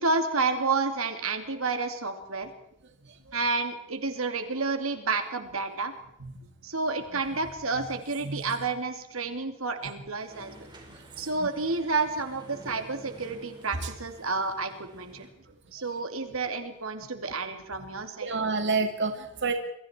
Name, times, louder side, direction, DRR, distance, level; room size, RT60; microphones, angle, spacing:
voice 1, 0.0-2.5 3.3-5.9 6.6-10.7 11.2-15.3 15.7-18.3, right 3 dB, 85° right, 6 dB, 2.8 m, -30 dB
sound 1, 10.3-15.3, right 1 dB, 20° right, 5.0 m, -50 dB
voice 2, 18.2-19.5, right 4 dB, 60° right, 5 dB, 2.4 m, -29 dB
28.0 x 22.5 x 4.6 m, 0.77 s
head